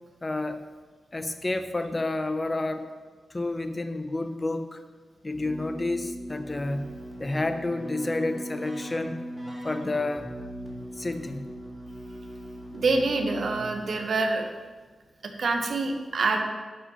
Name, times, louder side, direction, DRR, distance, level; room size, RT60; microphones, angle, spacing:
voice 1, 0.2-0.6 1.1-2.9 3.3-4.8 5.2-6.8 7.2-9.2 9.6-10.3 11.0-11.4, left 2 dB, 25° left, 8 dB, 0.8 m, -30 dB
Keyboard (musical), 5.3-14.0, equal, 5° right, 3.0 m, -39 dB
voice 2, 12.7-14.5 15.4-16.4, right 3 dB, 60° right, 4 dB, 1.2 m, -26 dB
11.5 x 5.5 x 5.5 m, 1.4 s
wide cardioid pair, 110°, 0 cm